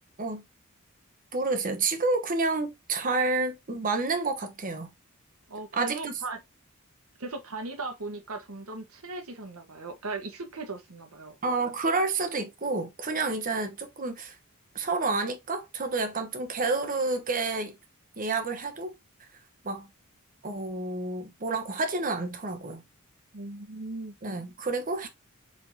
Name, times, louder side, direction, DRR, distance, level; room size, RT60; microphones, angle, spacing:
voice 1, 1.3-4.9 5.7-6.1 11.4-14.4 14.7-17.7 18.2-18.9 19.6-19.9 20.4-22.8 24.2-25.1, right 3 dB, 40° right, 0.9 m, -29 dB
voice 2, 5.5-6.4 7.2-11.4 23.3-24.1, right 3 dB, 70° right, 1.1 m, -38 dB
4.5 x 3.6 x 2.6 m
head